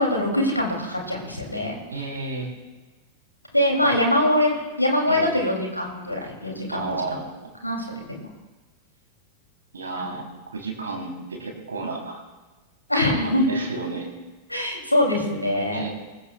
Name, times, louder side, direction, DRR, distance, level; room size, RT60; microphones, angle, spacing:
voice 1, 0.0-2.0 3.5-7.0 7.6-8.2 9.9-10.1 12.9-13.6 14.5-15.9, left 1 dB, 85° left, 0 dB, 2.9 m, -23 dB
voice 2, 1.9-2.5 3.8-4.0 5.1-5.4 6.7-7.5 9.7-12.2 13.2-14.1 15.7-15.9, right 3 dB, 70° right, 1 dB, 3.6 m, -32 dB
22.5 x 15.0 x 2.4 m, 1.2 s
figure-of-eight pair, 90°, 0 cm